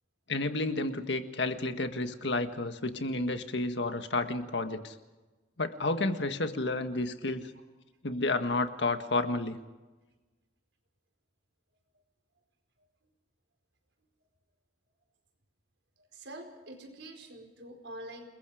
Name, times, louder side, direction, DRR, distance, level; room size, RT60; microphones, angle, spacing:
voice 1, 0.3-5.0 5.6-7.5 8.0-9.6, left 2 dB, 70° left, 7 dB, 1.7 m, -31 dB
voice 2, 16.0-18.3, right 1 dB, 80° right, 4 dB, 4.8 m, -46 dB
29.0 x 21.5 x 5.1 m, 1.2 s
head